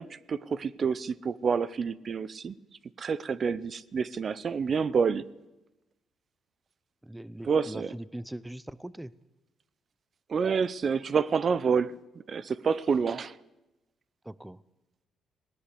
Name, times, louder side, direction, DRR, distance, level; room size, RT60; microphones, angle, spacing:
voice 1, 0.0-2.5 3.0-5.2 7.5-7.9 10.3-11.9 12.3-13.4, right 6 dB, 45° right, 0.7 m, -28 dB
voice 2, 7.0-9.1 14.2-14.6, right 1 dB, 10° right, 0.6 m, -41 dB
19.0 x 18.0 x 8.4 m
cardioid pair, 90°, 0 cm